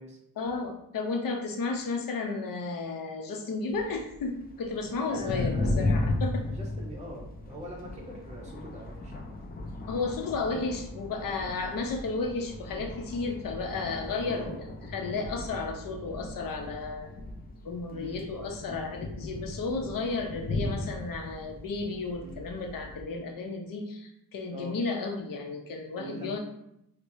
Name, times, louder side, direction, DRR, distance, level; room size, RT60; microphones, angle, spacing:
voice 1, 0.4-6.4 9.9-14.6 14.9-17.1 17.6-26.4, left 3 dB, 65° left, 3 dB, 0.8 m, -33 dB
sound 1, 3.7-23.0, left 2 dB, 25° left, 0.5 m, -36 dB
voice 2, 5.0-5.8 6.5-9.4 12.7-12.9 14.2-14.6 17.9-18.2 22.2-22.4 24.5-24.8 26.0-26.4, equal, 20° right, -3 dB, 0.8 m, -43 dB
4.5 x 2.3 x 2.7 m, 0.78 s
cardioid pair, 95°, 37 cm